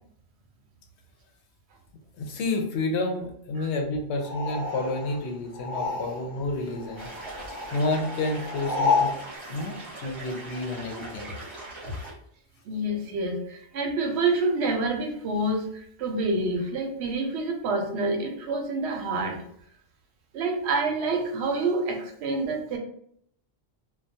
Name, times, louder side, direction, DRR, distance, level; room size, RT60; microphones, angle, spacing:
voice 1, 2.1-7.1 7.5-9.1 9.5-11.4 11.9-12.1, left 2 dB, 85° left, 3 dB, 0.9 m, -30 dB
sound 1, 4.2-6.5 6.7-9.2, left 4 dB, 50° left, 1.0 m, -30 dB
sound 2, 7.0-12.1, right 2 dB, 30° right, 0.9 m, -41 dB
voice 2, 12.7-19.4 20.3-22.8, right 2 dB, 85° right, 3 dB, 0.9 m, -27 dB
2.2 x 2.2 x 2.6 m, 0.68 s
omnidirectional pair, 1.1 m